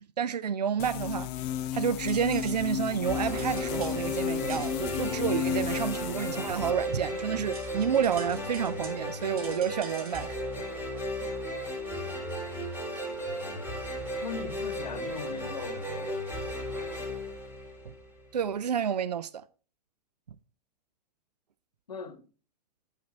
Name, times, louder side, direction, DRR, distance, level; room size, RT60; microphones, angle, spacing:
voice 1, 0.2-1.3 1.7-10.3 17.9-18.0 18.3-19.4, right 8 dB, 75° right, 0.4 m, -29 dB
sound 1, 0.8-6.7, left 11 dB, 35° left, 0.4 m, -33 dB
sound 2, 1.5-10.8, right 5 dB, 60° right, 1.4 m, -50 dB
sound 3, 3.0-18.3, equal, 10° right, 2.7 m, -35 dB
voice 2, 14.2-16.2 21.9-22.2, left 5 dB, 80° left, 1.0 m, -39 dB
8.5 x 5.8 x 4.0 m
figure-of-eight pair, 95°, 21 cm